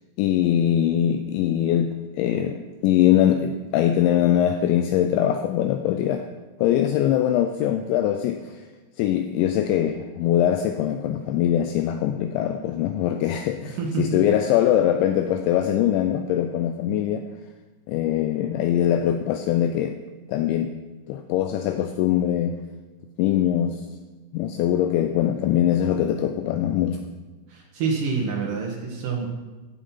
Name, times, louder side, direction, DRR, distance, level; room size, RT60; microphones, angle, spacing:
voice 1, 0.2-6.3 6.6-8.6 9.0-17.2 17.9-20.0 20.3-20.7 21.1-22.6 23.2-23.8 24.3-27.0, left 10 dB, 90° left, 7 dB, 2.6 m, -22 dB
voice 2, 13.8-14.2 14.5-14.6 27.5-29.3, right 5 dB, 70° right, -1 dB, 2.1 m, -27 dB
15.5 x 7.7 x 4.2 m, 1.3 s
omnidirectional pair, 5.8 m